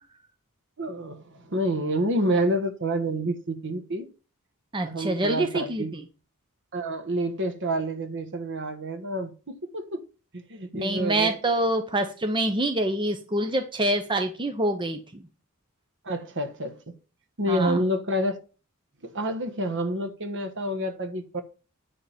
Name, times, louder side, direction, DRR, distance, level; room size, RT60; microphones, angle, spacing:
voice 1, 0.8-4.1 4.9-5.9 6.7-10.0 10.5-11.3 16.0-16.9 17.4-18.4 19.0-21.4, right 1 dB, 55° right, 1.3 m, -28 dB
voice 2, 4.7-6.0 10.8-15.2 17.5-17.8, right 1 dB, 20° right, 0.8 m, -26 dB
10.0 x 3.7 x 7.2 m
head